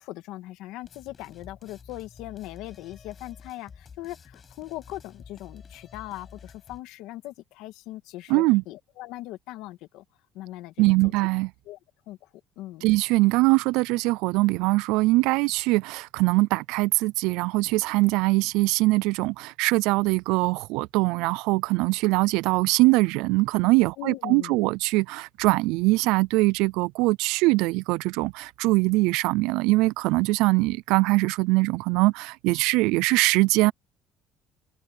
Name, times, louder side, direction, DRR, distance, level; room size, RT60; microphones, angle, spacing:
voice 1, 0.0-10.0 10.3-11.1 11.7-11.8 12.1-12.3 12.6-12.9 24.0-24.6, left 16 dB, 80° left, 2.4 m, -40 dB
sound 1, 0.8-6.8, left 6 dB, 30° left, 5.5 m, -49 dB
voice 2, 8.3-8.6 10.8-11.5 12.8-33.7, right 22 dB, 90° right, 0.4 m, -22 dB
cardioid pair, 125°, 0 cm